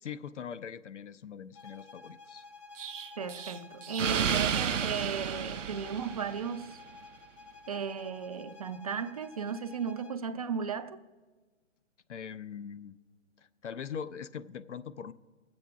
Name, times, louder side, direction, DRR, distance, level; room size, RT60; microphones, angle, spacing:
voice 1, 0.0-2.4 12.1-13.0 13.4-15.1, left 7 dB, 70° left, 0.7 m, -42 dB
sound 1, 1.5-10.3, left 3 dB, 25° left, 0.8 m, -52 dB
Explosion, 2.8-6.6, right 8 dB, 80° right, 0.6 m, -32 dB
voice 2, 3.2-6.8 7.7-11.0, right 6 dB, 30° right, 0.4 m, -35 dB
21.0 x 7.9 x 3.6 m
figure-of-eight pair, 140°, 37 cm